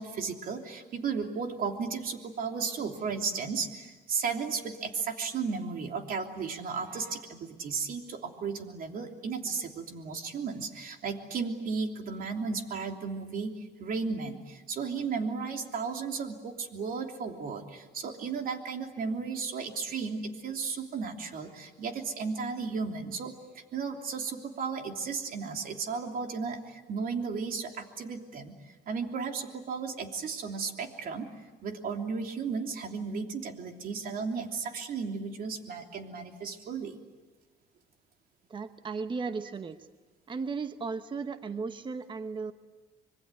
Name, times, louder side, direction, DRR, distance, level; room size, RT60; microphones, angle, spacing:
voice 1, 0.0-31.3 31.6-37.0, right 5 dB, 60° right, 4 dB, 3.1 m, -34 dB
voice 2, 38.5-39.8 40.3-42.5, right 4 dB, 30° right, 10 dB, 1.1 m, -35 dB
26.0 x 22.5 x 9.8 m, 1.3 s
cardioid pair, 110°, 17 cm